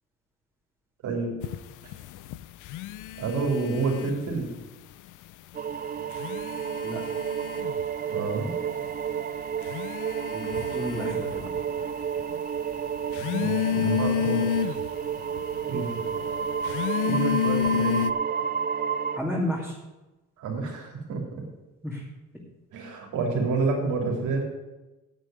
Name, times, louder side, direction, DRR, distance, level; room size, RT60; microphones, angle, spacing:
voice 1, 1.0-1.4 3.2-4.5 8.1-8.5 13.2-14.5 15.7-16.0 17.0-18.0 20.4-21.2 22.7-24.4, right 3 dB, 80° right, 0 dB, 3.5 m, -28 dB
sound 1, 1.4-4.5 4.8-5.6 6.0-18.1, left 10 dB, 85° left, 0.6 m, -31 dB
sound 2, 5.5-19.2, right 7 dB, 30° right, 0.5 m, -31 dB
voice 2, 10.3-11.6 19.1-19.8 21.8-22.1, equal, ahead, -5 dB, 2.6 m, -32 dB
9.2 x 8.3 x 7.9 m, 1.1 s
cardioid pair, 90°, 30 cm